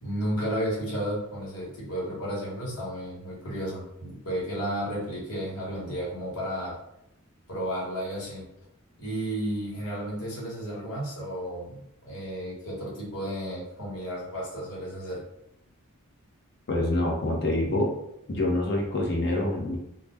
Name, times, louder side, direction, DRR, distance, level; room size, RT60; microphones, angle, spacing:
voice 1, 0.0-6.7 7.5-8.4 9.0-15.2, equal, 80° left, -4 dB, 1.2 m, -33 dB
voice 2, 16.7-17.9 18.3-19.8, left 1 dB, 50° left, -1 dB, 0.7 m, -26 dB
2.4 x 2.1 x 3.3 m, 0.79 s
head